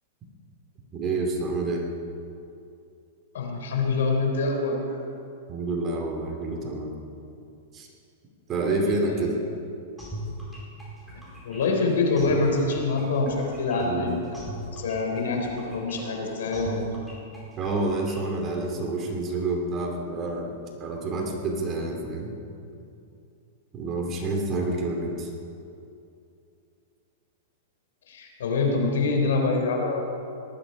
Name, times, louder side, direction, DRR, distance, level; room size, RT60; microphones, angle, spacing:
voice 1, 0.9-1.8 5.5-6.9 7.7-7.9 8.5-9.4 13.8-14.2 17.6-20.5 20.8-22.3 23.7-25.3, right 2 dB, 25° right, 1 dB, 2.7 m, -28 dB
voice 2, 3.3-5.0 8.7-9.2 11.2-14.3 14.7-16.9 28.1-30.0, left 3 dB, 80° left, 2 dB, 4.0 m, -25 dB
sound 1, 10.0-18.7, equal, ahead, 4.9 m, -40 dB
19.0 x 13.0 x 5.5 m, 2.6 s
hypercardioid pair, 145°, 0 cm